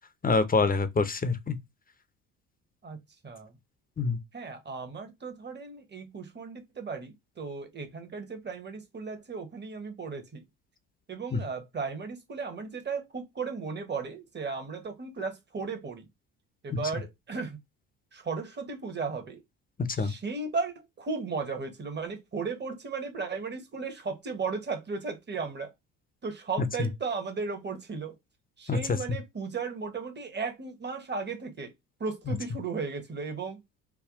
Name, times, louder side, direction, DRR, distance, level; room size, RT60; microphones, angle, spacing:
voice 1, 0.2-1.6 4.0-4.2 11.3-11.4 16.7-16.8 20.0-20.1 26.8-26.9 28.7-29.0 32.3-32.4, left 4 dB, 20° left, 0.7 m, -26 dB
voice 2, 4.3-10.4 11.1-16.1 16.6-17.6 18.1-19.4 19.9-25.7 26.2-28.1 28.6-31.7 32.0-33.6, right 4 dB, 25° right, 1.2 m, -35 dB
3.5 x 2.2 x 3.6 m
hypercardioid pair, 65°, 38 cm